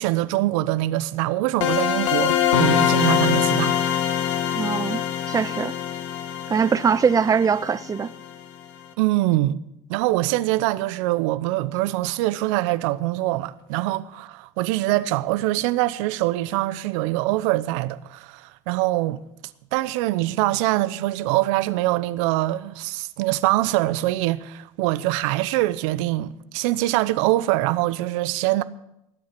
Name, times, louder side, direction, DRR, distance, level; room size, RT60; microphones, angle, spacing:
voice 1, 0.0-3.7 9.0-9.6 9.9-19.2 19.7-28.6, right 17 dB, 75° right, 0.8 m, -23 dB
sound 1, 1.6-8.3, left 10 dB, 85° left, 1.5 m, -23 dB
voice 2, 4.5-5.0 5.3-5.7 6.5-8.1, right 6 dB, 20° right, 0.6 m, -21 dB
19.5 x 8.7 x 5.9 m
hypercardioid pair, 80°, 16 cm